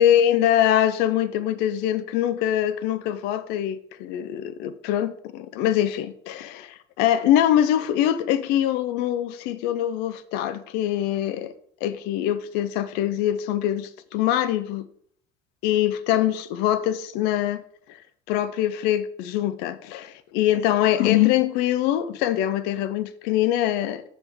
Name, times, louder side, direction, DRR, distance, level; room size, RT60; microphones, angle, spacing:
voice 1, 0.0-11.5 11.8-14.8 15.6-17.6 18.3-24.0, left 11 dB, 75° left, 0.6 m, -23 dB
7.1 x 3.6 x 6.1 m
cardioid pair, 120°, 17 cm